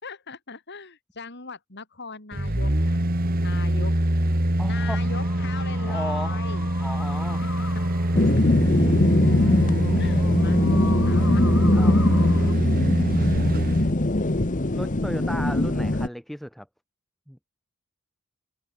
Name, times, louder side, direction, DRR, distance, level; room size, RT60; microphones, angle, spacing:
voice 1, 0.0-3.0 3.4-3.9 4.6-6.7 10.0-10.6 11.0-11.5, left 4 dB, 50° left, 4.3 m, -39 dB
sound 1, 2.3-13.9 14.3-14.4, right 1 dB, 45° right, 2.5 m, -24 dB
voice 2, 4.6-5.1 5.8-6.4 6.8-7.6 8.1-8.4 11.7-12.5 14.7-16.7 17.3-17.4, equal, ahead, 5.2 m, -35 dB
sound 2, 5.0-12.5, left 4 dB, 75° left, 4.7 m, -41 dB
sound 3, 8.1-16.1, left 1 dB, 35° left, 1.2 m, -22 dB
head